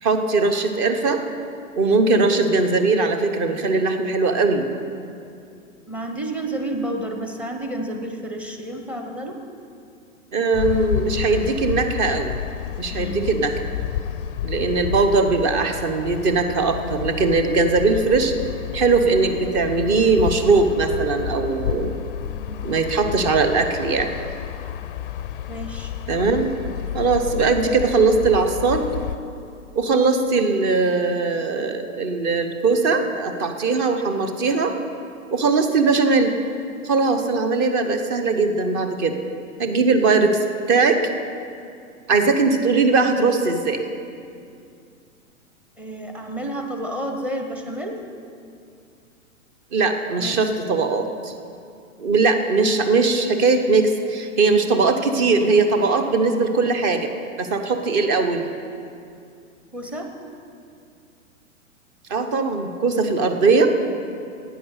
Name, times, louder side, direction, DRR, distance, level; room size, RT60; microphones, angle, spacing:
voice 1, 0.0-1.2 1.8-4.7 10.3-12.3 12.8-13.5 14.4-18.3 18.7-21.9 22.6-24.1 26.1-26.5 26.9-28.9 29.7-34.7 35.3-36.3 36.8-39.1 39.6-40.4 40.7-41.0 42.1-43.8 49.7-51.3 52.0-57.1 57.4-58.4 62.1-63.7, right 4 dB, 30° right, 7 dB, 1.1 m, -20 dB
voice 2, 5.9-9.4 12.9-13.3 22.3-22.6 25.5-25.9 45.8-48.0 50.2-50.5 59.7-60.1, right 1 dB, 5° right, 4 dB, 0.8 m, -30 dB
sound 1, 10.5-29.2, left 10 dB, 40° left, 0.4 m, -30 dB
11.5 x 9.1 x 6.7 m, 2.4 s
figure-of-eight pair, 110°, 42 cm